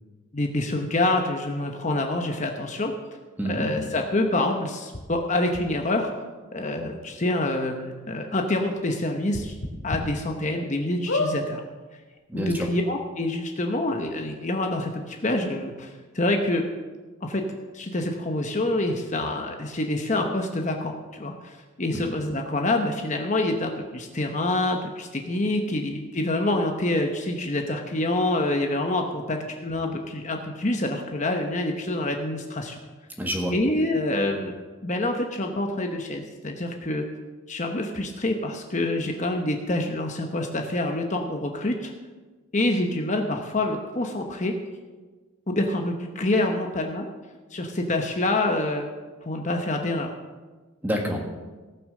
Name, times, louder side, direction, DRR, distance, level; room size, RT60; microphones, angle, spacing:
voice 1, 0.3-2.9 3.5-6.1 6.5-9.6 9.8-11.6 12.3-16.7 17.2-17.5 17.7-32.8 33.5-34.5 34.8-37.1 37.5-41.9 42.5-44.5 45.5-47.1 47.5-48.9 49.2-50.1, left 2 dB, 35° left, 3 dB, 0.9 m, -26 dB
sound 1, 4.9-5.0 5.5-5.6 6.6-6.7 7.0-7.1 7.5-7.6 9.3-10.0 10.5-10.6 11.0-11.3 12.2-12.3 12.5-12.6, left 2 dB, 75° left, 2.3 m, -28 dB
voice 2, 12.3-12.7 21.9-22.0 33.2-33.5 50.8-51.3, equal, 10° right, 1 dB, 1.7 m, -27 dB
17.5 x 6.2 x 6.5 m, 1.3 s
head